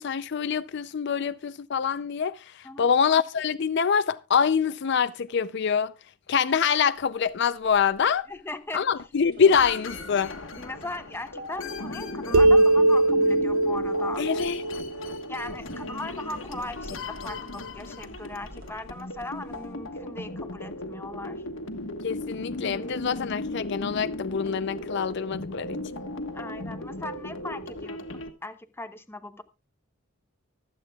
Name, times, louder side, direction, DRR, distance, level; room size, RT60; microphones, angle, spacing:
voice 1, 0.0-5.9 6.3-8.3 8.7-10.3 14.2-14.6 22.0-26.0, left 6 dB, 60° left, 0.5 m, -25 dB
sound 1, 7.1-19.7, equal, 55° right, 3.8 m, -52 dB
voice 2, 8.3-8.8 10.6-14.5 15.3-21.4 26.3-28.0 28.4-29.4, left 2 dB, 10° left, 0.9 m, -38 dB
sound 2, 9.5-28.3, left 2 dB, 90° left, 1.5 m, -36 dB
sound 3, 12.3-15.9, right 2 dB, 85° right, 0.6 m, -21 dB
24.5 x 8.4 x 2.3 m
head